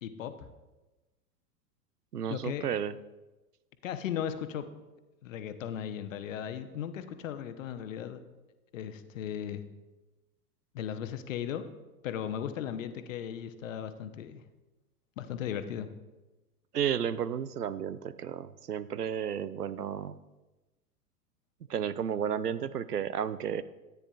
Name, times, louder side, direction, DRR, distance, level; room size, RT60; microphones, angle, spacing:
voice 1, 0.0-0.5 2.3-2.7 3.8-4.7 5.2-8.2 8.7-9.6 10.7-11.6 12.0-14.4 15.2-15.9, left 9 dB, 55° left, 9 dB, 0.9 m, -36 dB
voice 2, 2.1-2.9 16.7-20.2 21.7-23.6, right 8 dB, 85° right, 16 dB, 0.6 m, -32 dB
13.5 x 9.3 x 2.4 m, 1.1 s
figure-of-eight pair, 95°, 46 cm